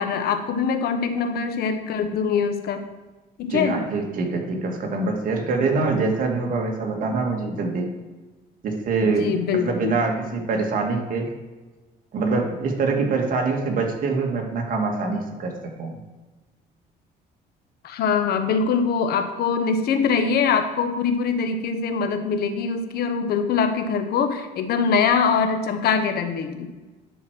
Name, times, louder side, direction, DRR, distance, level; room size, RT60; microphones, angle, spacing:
voice 1, 0.0-2.9 3.4-3.8 9.0-9.9 17.8-26.7, left 6 dB, 70° left, 7 dB, 1.1 m, -23 dB
voice 2, 3.5-7.9 8.6-11.3 12.1-15.9, right 3 dB, 55° right, 2 dB, 1.9 m, -24 dB
11.0 x 4.7 x 6.2 m, 1.2 s
cardioid pair, 110°, 17 cm